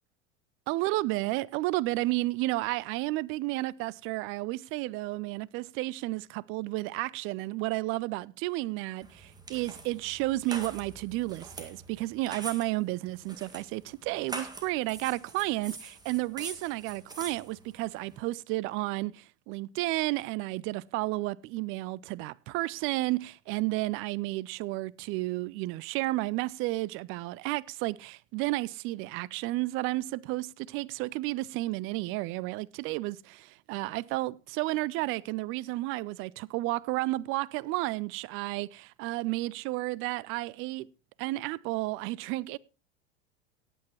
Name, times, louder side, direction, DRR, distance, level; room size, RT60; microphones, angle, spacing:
voice 1, 0.7-40.9 41.2-42.6, right 19 dB, 40° right, 0.5 m, -32 dB
sound 1, 9.0-18.2, right 2 dB, 10° right, 1.8 m, -45 dB
17.5 x 8.9 x 3.0 m
hypercardioid pair, 85°, 34 cm